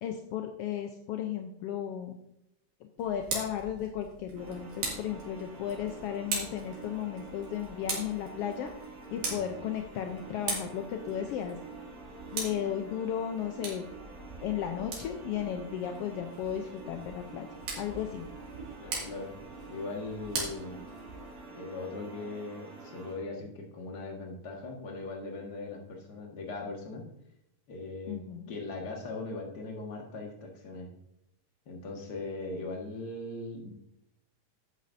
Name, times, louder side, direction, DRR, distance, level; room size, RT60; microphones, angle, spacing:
voice 1, 0.0-2.2 3.0-8.7 9.1-11.6 12.3-13.9 14.4-17.5 17.8-18.3 28.1-28.5, left 9 dB, 80° left, 5 dB, 1.4 m, -35 dB
Tick, 3.0-21.4, right 4 dB, 90° right, 3.8 m, -41 dB
sound 1, 4.4-23.2, right 4 dB, 70° right, 3.1 m, -47 dB
voice 2, 18.8-19.3 19.7-20.8 21.5-27.1 27.7-28.2 28.5-30.9 31.6-33.7, left 2 dB, 40° left, 1 dB, 1.7 m, -39 dB
11.5 x 8.4 x 2.6 m, 0.81 s
omnidirectional pair, 3.4 m